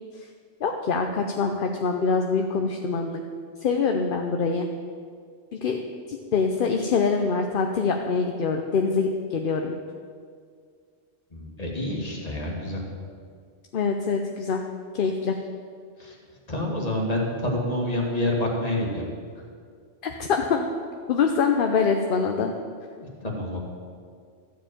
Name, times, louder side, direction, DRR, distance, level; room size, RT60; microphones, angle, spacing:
voice 1, 0.6-3.2 3.6-4.7 5.5-5.8 6.1-9.7 13.7-14.6 14.9-15.3 20.0-20.7 21.1-22.5, left 5 dB, 55° left, 4 dB, 0.7 m, -24 dB
voice 2, 11.3-12.8 16.0-16.2 16.5-19.0 23.0-23.6, left 1 dB, 30° left, -1 dB, 2.0 m, -28 dB
13.5 x 4.7 x 8.8 m, 2.1 s
omnidirectional pair, 1.2 m